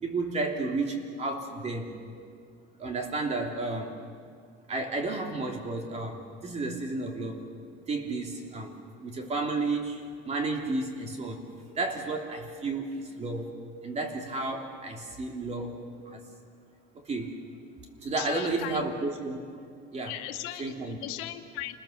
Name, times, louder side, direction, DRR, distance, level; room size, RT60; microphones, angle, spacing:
voice 1, 0.0-1.9 2.8-4.0 4.7-7.5 7.9-8.8 9.0-11.5 11.7-13.5 13.8-16.2 16.9-17.3 18.0-19.4 19.9-20.1 20.6-21.0, right 3 dB, 30° right, 2 dB, 3.2 m, -32 dB
voice 2, 18.2-18.8 20.1-20.7 21.0-21.8, left 14 dB, 90° left, 6 dB, 1.5 m, -37 dB
28.5 x 21.0 x 6.9 m, 2.2 s
cardioid pair, 135°, 21 cm